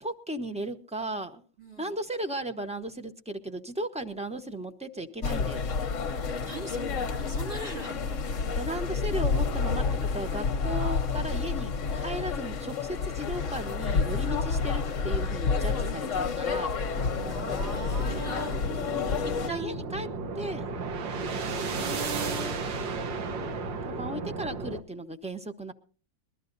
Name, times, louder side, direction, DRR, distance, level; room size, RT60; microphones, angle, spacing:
voice 1, 0.0-1.4 1.8-5.7 8.5-9.8 10.1-16.7 19.5-20.1 20.3-20.7 21.7-22.0 24.0-25.7, right 1 dB, 5° right, 7 dB, 0.7 m, -35 dB
voice 2, 1.6-1.9 6.4-8.6 17.3-18.6 19.5-19.9 21.4-22.6, right 2 dB, 35° right, 3 dB, 2.8 m, -41 dB
sound 1, 5.2-19.5, left 5 dB, 50° left, 1.1 m, -29 dB
sound 2, 16.9-24.8, right 3 dB, 75° right, 1.8 m, -34 dB
22.5 x 13.0 x 2.7 m, 0.39 s
omnidirectional pair, 2.1 m